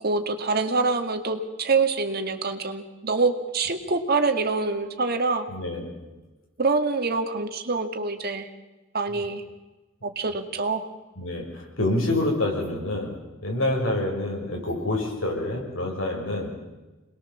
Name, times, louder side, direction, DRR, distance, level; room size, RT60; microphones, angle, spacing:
voice 1, 0.0-5.5 6.6-8.5 8.9-9.4 10.0-10.9, right 3 dB, 50° right, 7 dB, 2.1 m, -25 dB
voice 2, 5.5-5.9 11.2-13.1 13.4-16.5, left 1 dB, 75° left, 1 dB, 6.2 m, -27 dB
27.5 x 20.5 x 7.3 m, 1.1 s
head